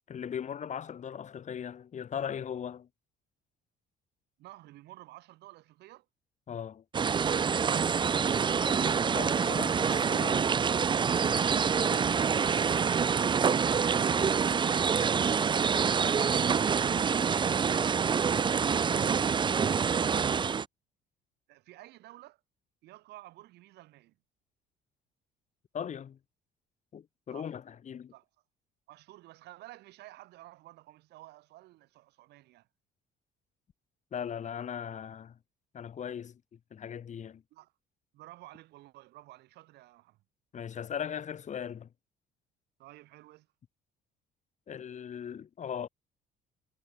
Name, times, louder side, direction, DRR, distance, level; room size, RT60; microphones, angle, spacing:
voice 1, 0.1-2.9 6.5-6.8 9.1-10.4 25.7-26.2 26.9-28.1 34.1-35.4 35.7-36.4 36.7-37.4 40.5-41.9 44.7-45.9, left 8 dB, 45° left, 3.6 m, -38 dB
voice 2, 4.4-6.1 19.6-20.6 21.5-22.4 22.8-24.2 27.3-27.5 28.1-28.3 28.9-32.7 37.5-37.7 38.1-40.2 42.8-43.5, right 17 dB, 80° right, 4.5 m, -52 dB
sound 1, 6.9-20.7, right 6 dB, 30° right, 0.6 m, -26 dB
cardioid pair, 110°, 17 cm